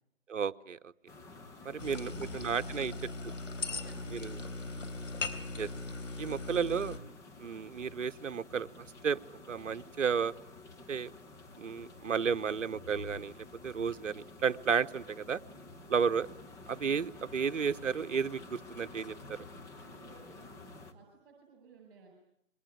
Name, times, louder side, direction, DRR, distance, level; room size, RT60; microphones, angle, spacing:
voice 1, 0.3-0.9 1.6-2.9 4.1-4.3 5.6-5.7 6.2-7.0 7.4-9.2 9.5-10.3 10.9-11.1 11.6-15.4 15.9-16.3 16.7-19.4, right 6 dB, 70° right, 12 dB, 1.0 m, -33 dB
sound 1, 1.1-20.9, left 3 dB, 5° left, 1.1 m, -51 dB
voice 2, 1.6-4.9 15.7-16.1 19.8-22.1, right 5 dB, 45° right, 0 dB, 7.8 m, -58 dB
sound 2, 1.8-7.0, left 3 dB, 75° left, 3.7 m, -39 dB
27.5 x 23.0 x 9.3 m, 0.78 s
figure-of-eight pair, 150°, 39 cm